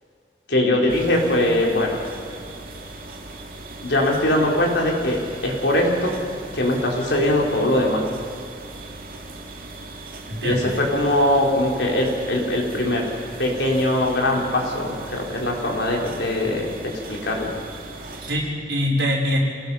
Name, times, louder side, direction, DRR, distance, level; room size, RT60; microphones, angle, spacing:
voice 1, 0.5-2.0 3.8-5.2 5.4-6.1 6.5-8.0 10.4-13.1 13.4-16.7 17.1-17.5, left 1 dB, 80° left, -1 dB, 4.0 m, -21 dB
sound 1, 0.9-18.4, right 2 dB, 50° right, 2.2 m, -38 dB
voice 2, 10.3-10.7 18.2-19.4, equal, 75° right, -2 dB, 4.9 m, -23 dB
27.5 x 18.5 x 5.7 m, 2.3 s
head